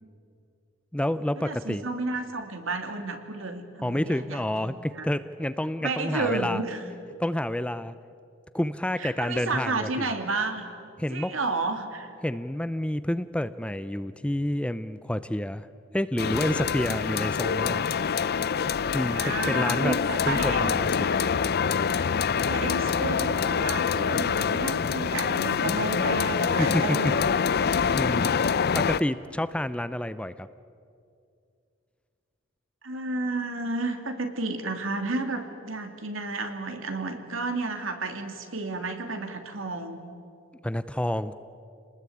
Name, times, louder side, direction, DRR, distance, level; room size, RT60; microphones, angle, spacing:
voice 1, 0.9-1.8 3.8-6.6 7.2-7.9 8.5-10.1 11.0-11.3 12.2-15.7 15.9-17.9 18.9-20.0 20.3-21.1 26.6-27.0 27.7-28.5 28.7-30.5 40.6-41.3, left 1 dB, 5° left, 13 dB, 0.5 m, -29 dB
voice 2, 1.4-5.0 5.8-6.8 9.0-10.7 11.1-12.1 19.1-20.7 21.9-27.2 32.8-40.0, right 3 dB, 70° right, 6 dB, 2.6 m, -32 dB
sound 1, 16.2-29.0, left 6 dB, 50° left, 0.5 m, -25 dB
27.5 x 20.0 x 8.6 m, 2.4 s
head